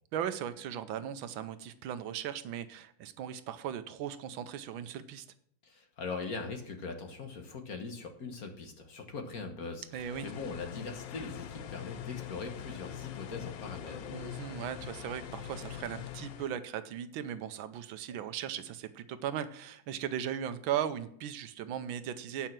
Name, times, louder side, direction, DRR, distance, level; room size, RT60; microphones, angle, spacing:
voice 1, 0.1-5.3 9.9-10.3 14.1-22.5, right 9 dB, 80° right, 12 dB, 1.5 m, -37 dB
voice 2, 5.6-14.1, left 4 dB, 50° left, 4 dB, 1.6 m, -41 dB
sound 1, 10.0-16.5, left 10 dB, 70° left, 1.3 m, -43 dB
9.0 x 5.6 x 7.4 m, 0.65 s
omnidirectional pair, 2.1 m